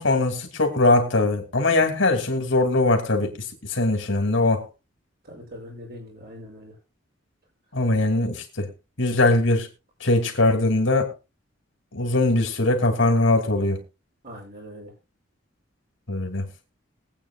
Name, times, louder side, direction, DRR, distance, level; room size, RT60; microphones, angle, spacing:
voice 1, 0.0-4.6 7.7-8.7 9.0-9.7 10.0-11.1 11.9-13.8 16.1-16.5, left 2 dB, 70° left, 2.5 m, -21 dB
voice 2, 5.3-6.7 14.2-14.9, equal, 55° right, 6.5 m, -41 dB
22.0 x 8.7 x 2.3 m
head